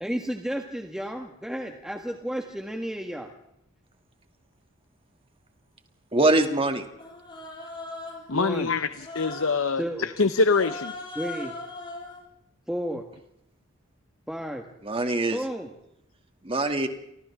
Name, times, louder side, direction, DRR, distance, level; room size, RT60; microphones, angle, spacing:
voice 1, 0.0-3.3 8.3-8.7 9.8-10.1 11.2-11.5 12.7-13.1 14.3-14.7 15.3-15.7, equal, 5° right, 3 dB, 1.6 m, -32 dB
voice 2, 6.1-6.8 14.8-15.4 16.4-16.9, right 2 dB, 25° right, 5 dB, 2.5 m, -23 dB
Human voice, 7.0-8.3 9.0-9.6 10.4-12.2, left 2 dB, 25° left, 7.5 m, -39 dB
voice 3, 8.3-10.9, left 4 dB, 80° left, 11 dB, 0.9 m, -24 dB
30.0 x 24.5 x 3.7 m, 0.79 s
head